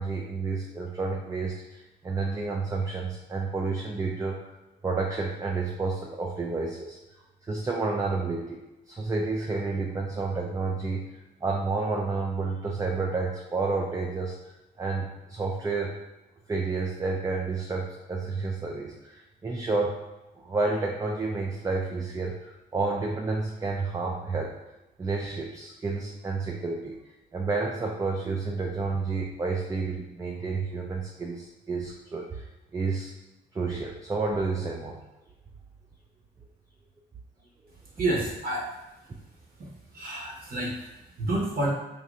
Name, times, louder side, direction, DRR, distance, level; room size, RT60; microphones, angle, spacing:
voice 1, 0.0-4.4 4.8-7.0 7.4-8.6 8.9-11.0 11.4-16.0 16.5-20.0 20.4-24.5 25.0-27.0 27.3-32.5 32.7-33.1 33.5-35.0, right 3 dB, 15° right, 0 dB, 0.3 m, -30 dB
voice 2, 37.9-38.8 39.6-41.7, right 1 dB, 50° right, -4 dB, 0.9 m, -30 dB
3.1 x 2.6 x 2.4 m, 1.0 s
cardioid pair, 90°, 20 cm